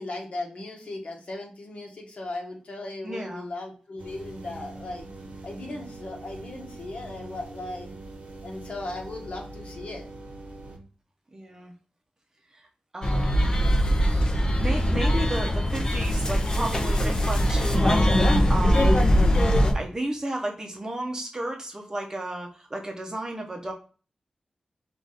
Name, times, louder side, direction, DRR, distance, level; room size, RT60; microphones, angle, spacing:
voice 1, 0.0-5.1 5.4-7.9 8.4-10.1, left 2 dB, 60° left, 0 dB, 1.3 m, -37 dB
voice 2, 3.0-3.5 11.3-11.7 12.5-12.7 12.9-13.6 14.6-19.3 19.7-23.7, right 1 dB, 25° right, 2 dB, 0.8 m, -33 dB
sound 1, 4.0-10.8, right 2 dB, 85° right, 1.2 m, -43 dB
sound 2, 13.0-19.7, equal, 30° left, 0.7 m, -21 dB
4.8 x 2.6 x 4.0 m, 0.38 s
wide cardioid pair, 130°, 2 cm